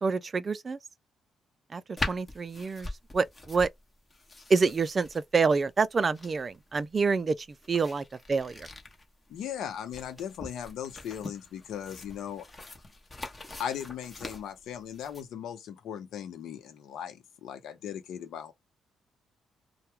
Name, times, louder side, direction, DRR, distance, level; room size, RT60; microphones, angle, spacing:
voice 1, 0.0-0.8 1.7-3.7 4.5-8.7, right 4 dB, 35° right, 0.3 m, -27 dB
sound 1, 2.0-15.2, left 2 dB, 20° left, 0.9 m, -42 dB
voice 2, 9.3-12.5 13.6-18.5, left 9 dB, 75° left, 0.7 m, -38 dB
2.2 x 2.1 x 2.9 m
cardioid pair, 90°, 0 cm